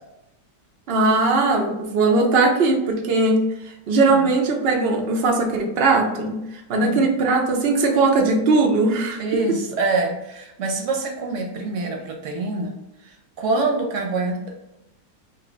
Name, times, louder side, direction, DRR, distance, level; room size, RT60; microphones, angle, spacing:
voice 1, 0.9-3.5 3.9-6.4 6.7-9.2, right 3 dB, 85° right, 1 dB, 0.5 m, -19 dB
voice 2, 9.2-12.7 13.0-14.5, right 3 dB, 60° right, 2 dB, 0.8 m, -25 dB
3.2 x 2.6 x 3.8 m, 0.89 s
omnidirectional pair, 1.8 m